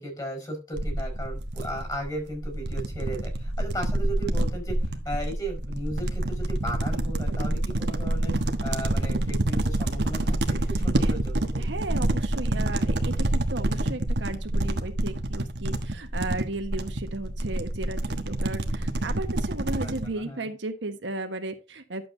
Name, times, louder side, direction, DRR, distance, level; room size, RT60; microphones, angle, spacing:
voice 1, 0.0-8.3 8.6-11.6 19.7-20.5, right 1 dB, 20° left, 3 dB, 4.8 m, -36 dB
sound 1, 0.8-20.1, right 1 dB, 65° right, 1.3 m, -27 dB
voice 2, 11.6-22.1, right 2 dB, 80° right, 7 dB, 1.4 m, -35 dB
11.5 x 7.7 x 2.7 m, 0.31 s
head